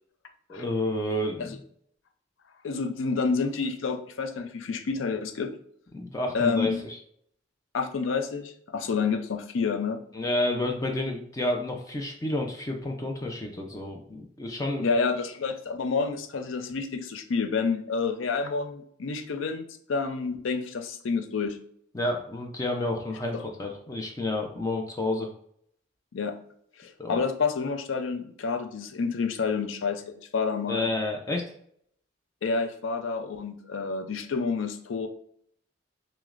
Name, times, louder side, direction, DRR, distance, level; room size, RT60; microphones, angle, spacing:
voice 1, 0.5-1.6 5.9-7.0 10.1-14.9 21.9-25.3 27.0-27.2 30.7-31.4, left 1 dB, 15° left, 1 dB, 0.4 m, -30 dB
voice 2, 2.6-5.5 6.3-6.8 7.7-10.0 14.8-21.6 23.3-23.4 26.1-26.4 26.8-30.9 32.4-35.1, left 4 dB, 85° left, 8 dB, 0.5 m, -29 dB
6.1 x 2.1 x 2.4 m, 0.65 s
head